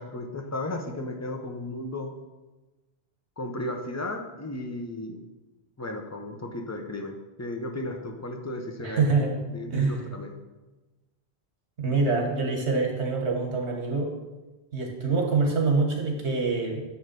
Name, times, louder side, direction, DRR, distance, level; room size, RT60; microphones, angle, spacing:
voice 1, 0.0-2.1 3.4-5.2 5.8-9.1 9.5-10.3, left 1 dB, 15° left, 3 dB, 0.8 m, -34 dB
voice 2, 8.8-9.4 9.7-10.0 11.8-14.1 14.7-16.8, right 4 dB, 90° right, 1 dB, 1.7 m, -25 dB
9.8 x 3.4 x 6.8 m, 1.1 s
omnidirectional pair, 1.1 m